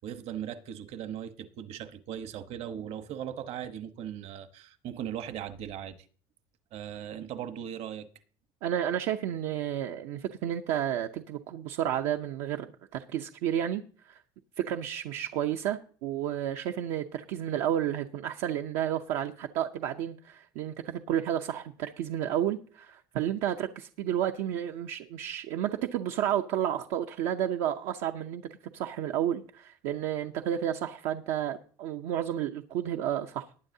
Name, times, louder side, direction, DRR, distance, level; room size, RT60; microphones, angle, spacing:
voice 1, 0.0-6.0 6.7-8.1, right 10 dB, 65° right, 1.1 m, -38 dB
voice 2, 8.6-14.2 14.6-28.4 28.7-33.5, right 10 dB, 80° right, 0.7 m, -31 dB
19.5 x 9.1 x 2.7 m
supercardioid pair, 105°, 12 cm